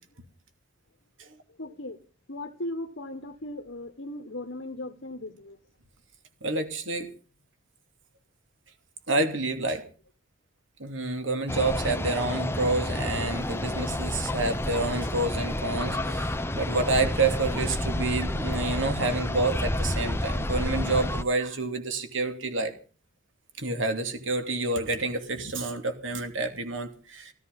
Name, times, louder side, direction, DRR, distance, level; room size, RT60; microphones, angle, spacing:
voice 1, 1.6-2.0 2.3-5.6, left 1 dB, 60° left, 3 dB, 1.6 m, -37 dB
voice 2, 6.4-7.1 9.1-9.8 10.8-22.7 23.6-27.3, right 2 dB, 75° right, 7 dB, 2.8 m, -28 dB
sound 1, 11.5-21.2, left 1 dB, 10° left, 0.8 m, -30 dB
16.0 x 14.5 x 5.5 m, 0.37 s
head